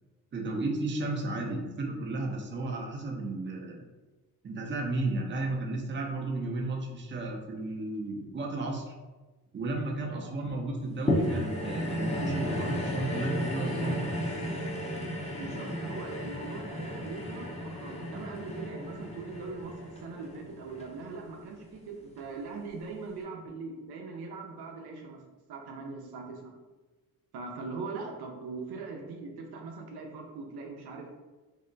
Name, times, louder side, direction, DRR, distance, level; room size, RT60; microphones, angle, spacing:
voice 1, 0.3-3.8 4.4-8.9 9.5-14.0, right 2 dB, 30° right, 0 dB, 0.6 m, -33 dB
voice 2, 10.0-10.3 15.4-25.2 25.5-26.5 27.3-31.2, right 4 dB, 80° right, 1 dB, 0.6 m, -41 dB
sound 1, 11.1-21.6 22.2-22.3, equal, 15° left, 0.7 m, -34 dB
2.7 x 2.1 x 3.8 m, 1.2 s
cardioid pair, 80°, 38 cm